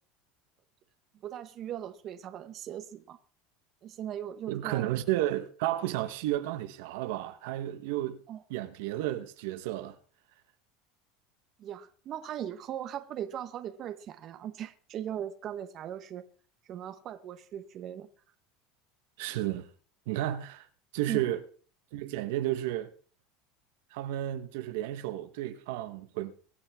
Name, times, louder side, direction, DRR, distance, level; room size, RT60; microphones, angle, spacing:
voice 1, 1.2-3.2 3.8-4.9 8.3-8.4 11.6-16.2 16.7-18.1 21.1-21.2, right 10 dB, 40° right, 1.1 m, -39 dB
voice 2, 4.5-8.2 8.5-9.9 19.2-19.7 20.1-20.7 20.9-21.4 21.9-22.9 23.9-26.3, right 14 dB, 75° right, 1.1 m, -32 dB
23.5 x 8.9 x 3.6 m
supercardioid pair, 125°, 0 cm